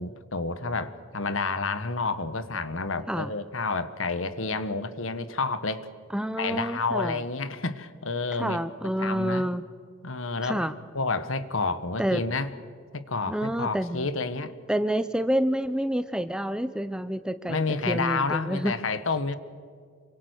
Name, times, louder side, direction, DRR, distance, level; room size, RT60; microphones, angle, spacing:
voice 1, 0.0-5.9 6.4-8.6 9.0-9.4 10.0-10.7 10.9-12.5 12.9-14.5 17.5-19.4, left 3 dB, 70° left, 13 dB, 1.4 m, -29 dB
voice 2, 6.1-7.2 8.3-9.6 10.4-10.7 12.0-12.2 13.3-14.1 14.7-18.7, equal, 5° right, 12 dB, 0.6 m, -28 dB
27.5 x 24.5 x 6.5 m, 2.1 s
head